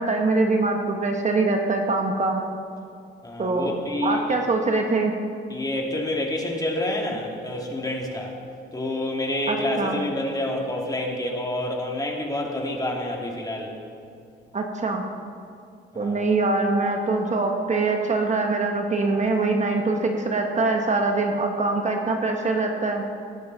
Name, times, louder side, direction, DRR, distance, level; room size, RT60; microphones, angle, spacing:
voice 1, 0.0-2.4 3.4-5.1 9.5-10.0 14.5-15.0 15.9-23.0, right 3 dB, 35° right, 3 dB, 1.4 m, -23 dB
voice 2, 3.2-4.2 5.5-8.3 8.7-13.7 15.9-16.2, left 1 dB, 20° left, -1 dB, 2.6 m, -28 dB
19.0 x 11.5 x 4.1 m, 2.3 s
cardioid pair, 90°, 20 cm